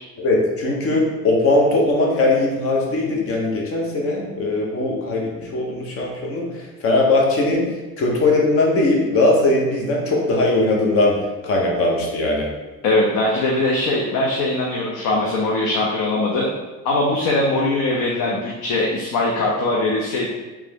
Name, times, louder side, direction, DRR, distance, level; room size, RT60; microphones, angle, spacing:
voice 1, 0.2-6.5 6.8-7.6 8.0-11.2 11.4-12.5, left 2 dB, 45° left, -1 dB, 0.9 m, -19 dB
voice 2, 12.8-16.5 16.8-20.3, left 2 dB, 75° left, -2 dB, 0.7 m, -21 dB
3.4 x 3.1 x 3.5 m, 1.2 s
cardioid pair, 150°, 32 cm